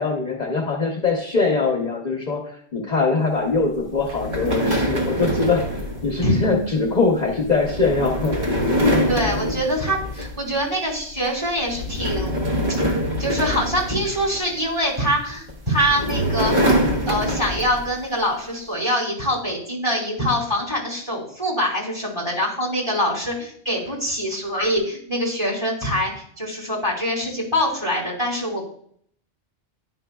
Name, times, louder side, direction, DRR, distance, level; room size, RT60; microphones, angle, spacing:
voice 1, 0.0-2.4 2.7-8.4, left 4 dB, 45° left, -1 dB, 0.9 m, -22 dB
sound 1, 4.1-10.6 11.0-11.3 11.7-14.7 15.5-17.9, equal, 45° right, 1.2 m, -24 dB
voice 2, 9.1-12.8 13.2-16.7 17.0-28.6, equal, 25° right, -4 dB, 3.0 m, -24 dB
10.5 x 5.2 x 2.3 m, 0.62 s
omnidirectional pair, 1.1 m